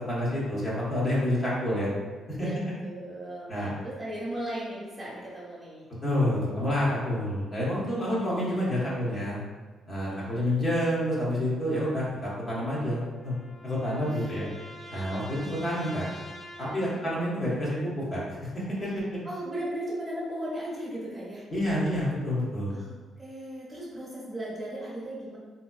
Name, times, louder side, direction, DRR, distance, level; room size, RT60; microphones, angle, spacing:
voice 1, 0.0-1.9 2.3-2.5 3.5-3.7 6.0-9.4 9.9-13.3 13.6-14.5 14.9-16.1 16.6-19.0 21.5-22.7, left 1 dB, 30° left, -7 dB, 1.1 m, -28 dB
voice 2, 2.4-5.9 9.9-10.3 14.0-14.1 16.8-17.0 19.2-21.4 22.7-22.9 23.2-25.4, right 1 dB, 20° right, -7 dB, 1.3 m, -37 dB
sound 1, 12.7-17.3, equal, 15° left, 0.6 m, -46 dB
3.3 x 2.8 x 2.3 m, 1.4 s
cardioid pair, 90°, 0 cm